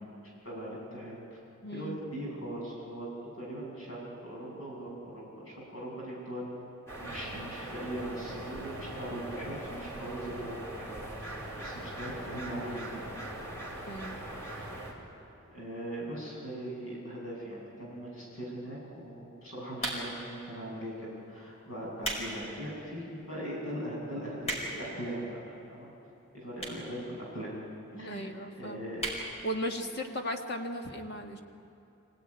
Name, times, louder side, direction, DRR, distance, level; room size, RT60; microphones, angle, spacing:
voice 1, 0.4-1.4 1.7-6.5 7.0-13.0 14.6-14.8 15.4-25.9 26.3-27.5 27.9-28.3 28.6-29.0, right 1 dB, 75° left, -3 dB, 7.6 m, -40 dB
voice 2, 1.6-2.0 13.9-14.2 27.9-28.8 29.4-31.4, equal, 50° left, 3 dB, 1.8 m, -36 dB
sound 1, 6.9-14.9, right 1 dB, 15° left, 4.1 m, -41 dB
sound 2, 19.8-20.3 21.0-21.2 21.8-22.3 22.7-22.8 23.4-23.5 23.7-23.8 24.1-24.9 25.7-25.8 26.6-26.9 27.2-27.3 27.5-27.6 27.8-27.9 28.2-28.5 28.9-29.2 29.6-29.7 29.9-30.0, right 1 dB, 30° left, 5.1 m, -35 dB
25.5 x 17.5 x 9.7 m, 2.7 s
head